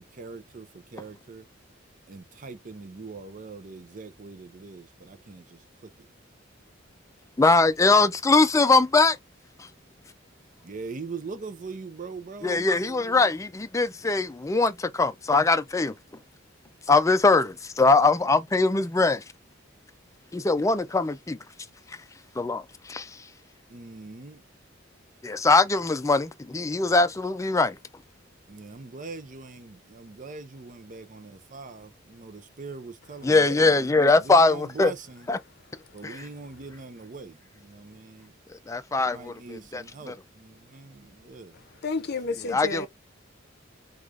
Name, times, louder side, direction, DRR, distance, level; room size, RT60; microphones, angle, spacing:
voice 1, 0.0-1.4 2.1-5.6 10.6-13.3 23.7-24.4 28.5-33.9 34.2-35.3 35.9-38.3 39.0-41.6, right 4 dB, 40° right, 0.6 m, -42 dB
voice 2, 7.4-9.2 9.6-9.7 12.4-15.9 16.9-19.2 20.3-21.4 21.9-22.0 22.4-23.3 25.2-27.8 33.2-34.9 35.3-35.4 36.0-36.3 38.5-40.1 42.4-42.9, left 3 dB, 15° left, 0.4 m, -22 dB
voice 3, 41.8-42.9, left 3 dB, 55° left, 0.7 m, -30 dB
4.7 x 2.4 x 2.5 m
head